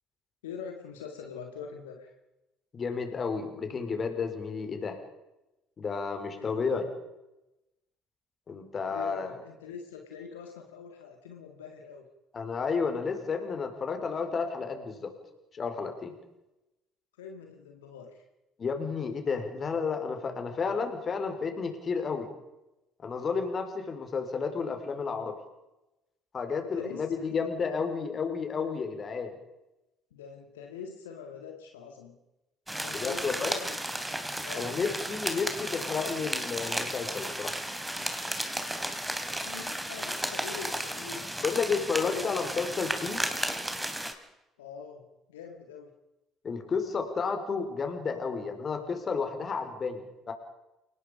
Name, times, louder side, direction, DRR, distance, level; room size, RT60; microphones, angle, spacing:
voice 1, 0.4-2.1 6.3-6.7 8.9-12.1 17.2-18.2 26.5-27.4 30.1-32.2 32.8-33.8 34.4-34.9 39.2-41.3 41.9-42.3 44.6-45.9, left 6 dB, 85° left, 3 dB, 2.1 m, -44 dB
voice 2, 2.7-5.0 5.8-6.9 8.5-9.3 12.3-15.1 15.5-16.2 18.6-22.3 23.0-25.4 26.3-29.3 32.9-33.5 34.6-37.5 41.4-43.2 46.4-50.3, left 5 dB, 40° left, 6 dB, 4.8 m, -31 dB
sound 1, 32.7-44.1, right 1 dB, 5° right, 3.4 m, -34 dB
29.5 x 18.5 x 5.2 m, 0.96 s
hypercardioid pair, 55°, 0 cm